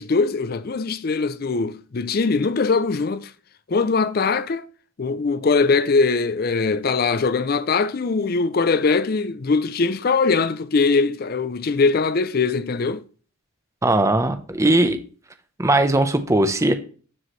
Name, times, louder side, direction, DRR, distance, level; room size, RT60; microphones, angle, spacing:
voice 1, 0.0-3.3 3.7-4.7 5.0-13.0, left 4 dB, 45° left, 0.4 m, -21 dB
voice 2, 13.8-15.0 15.6-16.7, right 2 dB, 15° right, 0.6 m, -19 dB
12.5 x 4.7 x 3.1 m
head